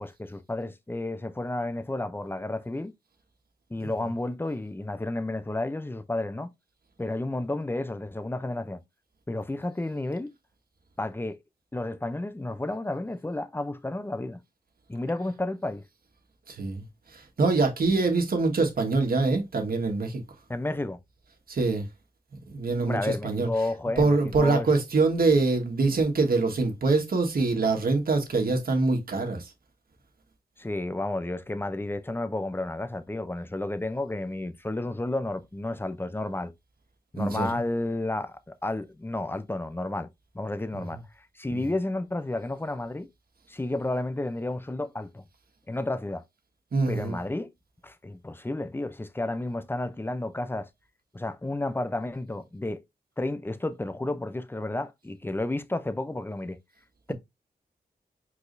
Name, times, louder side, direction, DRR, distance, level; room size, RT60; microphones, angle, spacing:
voice 1, 0.0-2.9 3.7-6.5 7.0-8.8 9.3-10.3 11.0-11.4 11.7-14.4 14.9-15.8 20.5-21.0 22.8-24.7 30.6-36.5 37.1-40.1 40.3-43.1 43.5-45.2 45.7-46.2 46.9-47.5 47.8-50.7 51.1-52.8 53.2-56.6, left 2 dB, 15° left, 0.6 m, -31 dB
voice 2, 16.5-16.8 17.1-20.2 21.5-21.8 22.5-23.5 24.0-29.5 37.2-37.6 40.7-40.8 46.7-47.2, right 3 dB, 65° right, 1.7 m, -24 dB
4.9 x 4.1 x 2.6 m
cardioid pair, 80°, 16 cm